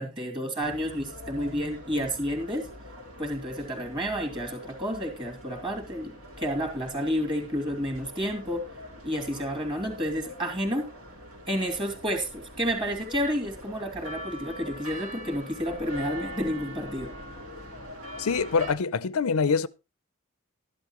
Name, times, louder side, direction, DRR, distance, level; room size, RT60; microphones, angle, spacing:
voice 1, 0.0-2.7 3.2-8.7 9.0-10.9 11.5-17.1, equal, 25° right, 2.9 m, -30 dB
sound 1, 0.6-18.7, equal, 75° right, 3.6 m, -43 dB
voice 2, 18.2-19.7, left 5 dB, 85° left, 0.6 m, -25 dB
13.0 x 11.5 x 3.1 m
head